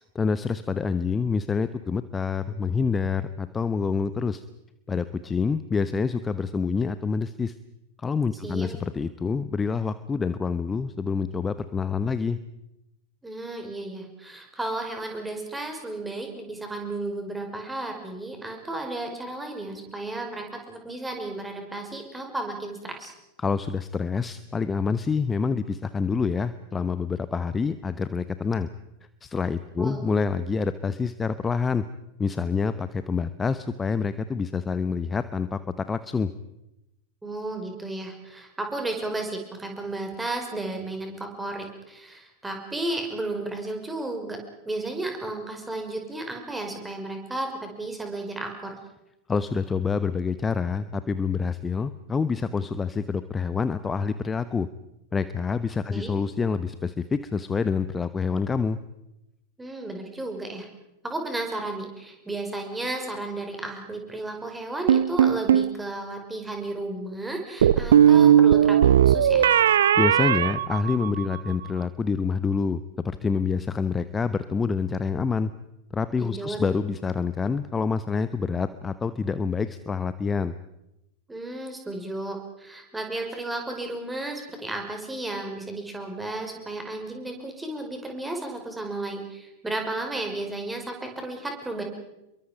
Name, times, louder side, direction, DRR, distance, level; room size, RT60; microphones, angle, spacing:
voice 1, 0.1-4.4 4.9-7.5 8.0-12.4 23.4-28.7 29.2-31.8 32.2-36.3 49.3-54.7 55.1-58.8 70.0-75.5 75.9-80.5, left 5 dB, 15° left, 13 dB, 0.9 m, -27 dB
voice 2, 13.2-23.1 29.8-30.0 37.2-44.4 44.7-48.7 55.9-56.2 59.6-60.7 61.0-69.5 76.2-76.6 81.3-91.8, right 2 dB, 10° right, 3 dB, 5.6 m, -33 dB
sound 1, 64.9-65.7 67.6-71.4, right 9 dB, 60° right, 0.8 m, -18 dB
29.0 x 23.0 x 5.3 m, 0.87 s
figure-of-eight pair, 90°, 0 cm